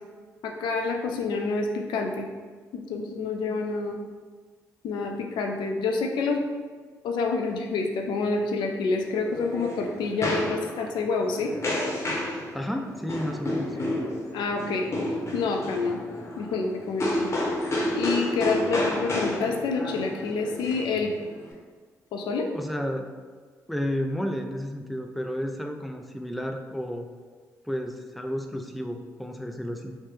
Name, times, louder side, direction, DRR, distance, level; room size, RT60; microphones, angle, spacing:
voice 1, 0.4-2.3 2.7-4.0 4.8-6.4 7.0-11.5 14.3-14.9 15.3-16.0 16.4-17.3 17.9-21.1 22.1-22.5, left 4 dB, 75° left, 3 dB, 0.4 m, -28 dB
sound 1, 9.0-21.5, left 1 dB, 35° left, 0.8 m, -31 dB
voice 2, 12.5-13.8 22.5-23.1 23.7-27.1 27.6-30.0, equal, ahead, 4 dB, 0.3 m, -32 dB
3.0 x 2.1 x 3.1 m, 1.5 s
hypercardioid pair, 45°, 8 cm